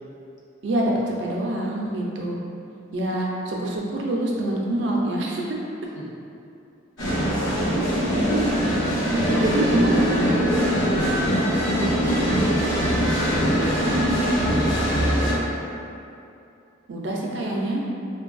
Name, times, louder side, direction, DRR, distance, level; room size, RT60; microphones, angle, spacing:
voice 1, 0.6-2.4 2.9-5.4 7.7-10.3 14.0-14.3 16.9-17.8, right 1 dB, 65° right, -2 dB, 0.5 m, -26 dB
sound 1, 7.0-15.3, equal, 90° left, 1.0 m, -22 dB
voice 2, 9.3-11.4 11.7-12.9 13.3-14.9, right 1 dB, 65° left, -6 dB, 0.7 m, -32 dB
3.8 x 2.2 x 2.5 m, 2.7 s
head